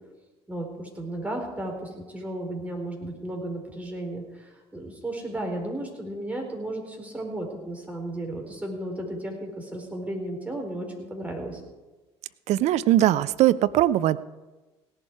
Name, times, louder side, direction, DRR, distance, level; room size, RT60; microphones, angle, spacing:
voice 1, 0.5-11.6, right 1 dB, 10° right, 1 dB, 4.4 m, -34 dB
voice 2, 12.5-14.2, right 13 dB, 50° right, 15 dB, 0.6 m, -20 dB
17.0 x 11.0 x 4.8 m, 1.2 s
figure-of-eight pair, 60°, 14 cm